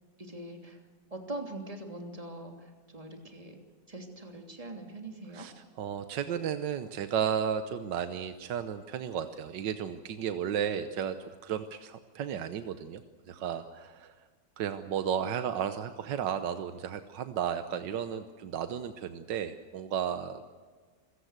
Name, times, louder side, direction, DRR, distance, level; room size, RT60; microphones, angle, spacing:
voice 1, 0.2-0.8 1.1-3.6 3.9-5.5, right 1 dB, 20° right, 3 dB, 3.0 m, -42 dB
voice 2, 5.3-11.2 11.4-13.0 13.3-14.1 14.6-20.4, right 8 dB, 80° right, 9 dB, 1.6 m, -33 dB
26.0 x 16.5 x 8.1 m, 1.5 s
omnidirectional pair, 1.9 m